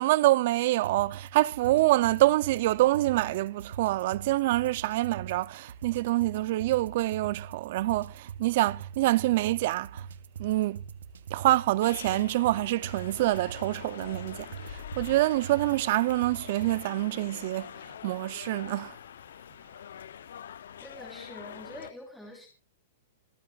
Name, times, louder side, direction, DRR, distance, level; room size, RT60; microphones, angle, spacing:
voice 1, 0.0-10.1 10.4-10.8 11.3-17.7 18.0-19.0, right 17 dB, 40° right, 0.5 m, -26 dB
sound 1, 0.8-16.8, right 7 dB, 85° right, 1.7 m, -43 dB
sound 2, 11.8-21.9, left 9 dB, 75° left, 0.6 m, -45 dB
voice 2, 20.8-22.5, left 1 dB, ahead, 3.9 m, -45 dB
26.5 x 9.2 x 2.4 m
hypercardioid pair, 170°, 0 cm